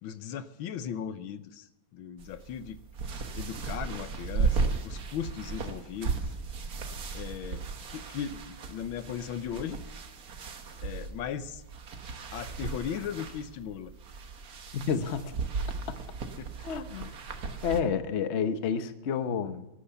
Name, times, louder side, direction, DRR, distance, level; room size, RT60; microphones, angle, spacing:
voice 1, 0.0-2.8 3.3-6.2 7.1-7.6 7.9-9.8 10.8-11.6 12.3-13.9 16.4-16.7, left 8 dB, 75° left, 12 dB, 1.6 m, -37 dB
sound 1, 2.2-17.8, right 4 dB, 50° right, 1.5 m, -35 dB
voice 2, 14.7-15.3 15.9-16.0 16.6-17.1 17.6-19.7, left 6 dB, 45° left, 10 dB, 0.9 m, -30 dB
17.5 x 10.0 x 7.0 m, 0.89 s
omnidirectional pair, 2.3 m